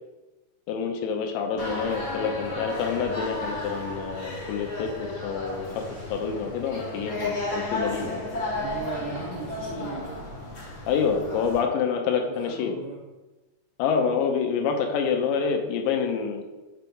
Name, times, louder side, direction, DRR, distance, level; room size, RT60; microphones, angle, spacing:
voice 1, 0.7-5.8 6.1-8.2 10.9-12.7 13.8-16.5, left 6 dB, 80° left, 4 dB, 3.0 m, -27 dB
sound 1, 1.6-11.6, left 2 dB, 40° left, 2.1 m, -33 dB
voice 2, 8.5-10.2 12.2-13.0, right 6 dB, 80° right, -4 dB, 1.7 m, -37 dB
6.0 x 5.3 x 4.5 m, 1.1 s
omnidirectional pair, 5.3 m